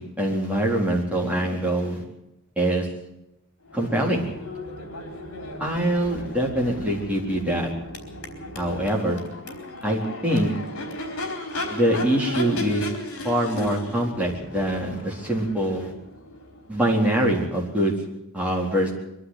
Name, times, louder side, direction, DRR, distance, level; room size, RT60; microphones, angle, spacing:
voice 1, 0.0-2.0 2.6-2.9 3.7-4.3 5.6-7.7 8.5-9.2 9.8-10.5 11.7-12.9 13.2-15.9 16.7-17.9 18.3-18.9, right 1 dB, 5° right, -3 dB, 4.0 m, -24 dB
Crowd / Race car auto racing / Accelerating revving vroom, 3.6-17.5, left 1 dB, 70° left, 4.4 m, -36 dB
23.5 x 12.0 x 9.4 m, 0.89 s
head